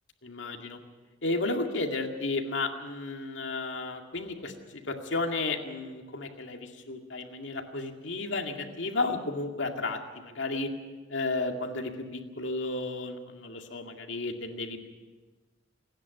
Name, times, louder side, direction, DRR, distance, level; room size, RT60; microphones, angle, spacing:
voice 1, 0.2-0.8 1.2-10.7 11.1-14.9, left 3 dB, 85° left, 3 dB, 2.2 m, -33 dB
26.5 x 10.5 x 9.5 m, 1.3 s
head